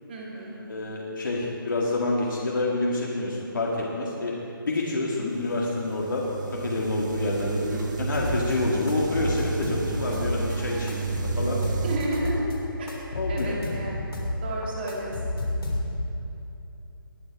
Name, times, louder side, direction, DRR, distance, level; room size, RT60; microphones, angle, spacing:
voice 1, 0.1-0.6 11.8-12.5 12.8-15.4, right 1 dB, 25° right, -3 dB, 2.5 m, -33 dB
voice 2, 0.7-4.3 4.6-11.6 13.1-13.6, left 2 dB, 60° left, -3 dB, 1.9 m, -28 dB
sound 1, 5.3-12.0, right 6 dB, 55° right, 1.5 m, -32 dB
sound 2, 8.1-8.5 8.9-10.5 10.9-12.5 12.9-14.4 14.6-16.1, left 1 dB, 85° left, 3.5 m, -30 dB
20.5 x 8.7 x 4.7 m, 2.9 s
hypercardioid pair, 170°, 12 cm